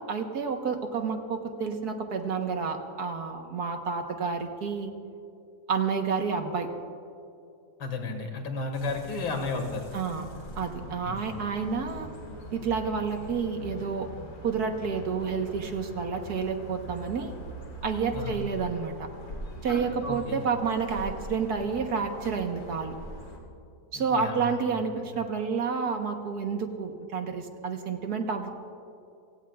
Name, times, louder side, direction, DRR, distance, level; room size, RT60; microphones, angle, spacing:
voice 1, 0.0-4.9 5.7-6.7 9.9-10.3 10.6-12.1 12.5-14.1 14.4-17.3 17.8-19.1 19.6-22.9 23.9-28.5, right 5 dB, 55° right, 5 dB, 1.6 m, -30 dB
voice 2, 7.8-9.9 11.0-11.2 18.1-18.4 20.0-20.4 23.9-24.6, left 3 dB, 85° left, 4 dB, 2.6 m, -33 dB
sound 1, 8.7-23.4, equal, 65° left, 2.9 m, -42 dB
29.5 x 17.5 x 2.4 m, 2.6 s
omnidirectional pair, 2.1 m